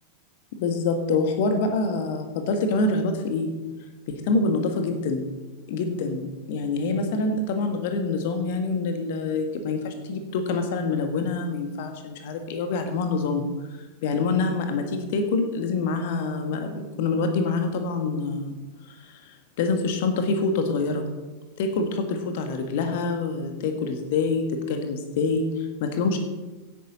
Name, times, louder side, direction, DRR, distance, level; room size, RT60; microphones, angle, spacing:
voice 1, 0.5-3.5 4.1-5.2 5.7-18.6 18.9-21.0 21.6-26.2, left 3 dB, 50° left, 6 dB, 1.5 m, -26 dB
16.5 x 8.8 x 4.1 m, 1.2 s
figure-of-eight pair, 90°, 0 cm